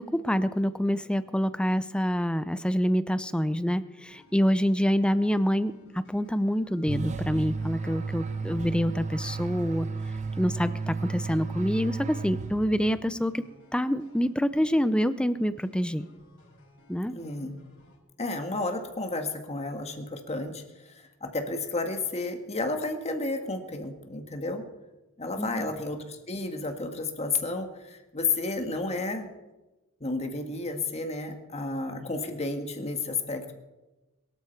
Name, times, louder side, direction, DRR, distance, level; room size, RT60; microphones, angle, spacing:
voice 1, 0.0-9.9 10.4-13.4 13.7-16.1 16.9-17.1 25.4-25.7, equal, 5° left, 13 dB, 0.5 m, -26 dB
sound 1, 4.0-18.0, left 1 dB, 65° left, 5.7 m, -57 dB
sound 2, 6.9-13.0, right 4 dB, 35° right, 0.7 m, -33 dB
voice 2, 17.1-17.6 18.2-24.6 25.2-29.3 30.0-33.6, left 3 dB, 30° left, 5 dB, 1.7 m, -32 dB
22.5 x 13.0 x 4.6 m, 1.1 s
head